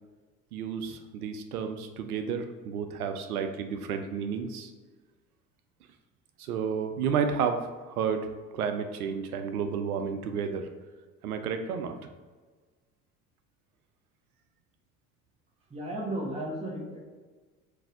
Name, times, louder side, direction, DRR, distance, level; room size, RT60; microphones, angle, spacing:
voice 1, 0.5-4.7 6.4-10.7 11.2-12.0, right 6 dB, 80° right, 7 dB, 0.5 m, -31 dB
voice 2, 15.7-17.0, right 1 dB, 15° right, -3 dB, 1.1 m, -34 dB
3.9 x 2.7 x 3.7 m, 1.4 s
figure-of-eight pair, 70°, 43 cm